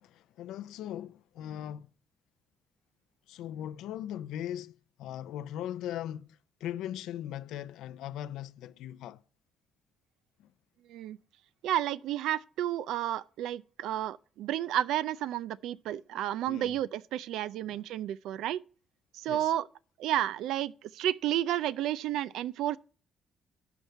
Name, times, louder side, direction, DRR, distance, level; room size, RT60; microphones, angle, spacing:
voice 1, 0.0-1.9 3.3-9.2 10.4-10.5 16.5-16.8 17.6-17.8 19.3-19.5, left 11 dB, 90° left, 0.5 m, -39 dB
voice 2, 11.6-18.6 19.1-19.7 20.0-22.8, right 12 dB, 90° right, 0.4 m, -31 dB
12.0 x 4.7 x 7.7 m
cardioid pair, 90°, 0 cm